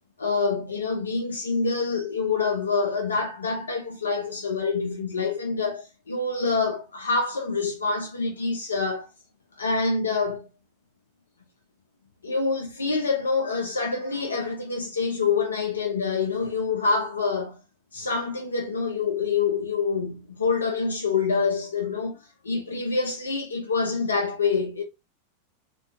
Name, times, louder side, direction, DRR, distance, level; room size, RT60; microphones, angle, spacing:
voice 1, 0.2-9.1 9.6-10.5 12.2-17.6 17.9-22.2 22.4-24.8, left 4 dB, 75° left, 0.4 m, -26 dB
2.5 x 2.2 x 2.6 m
figure-of-eight pair, 90°, 0 cm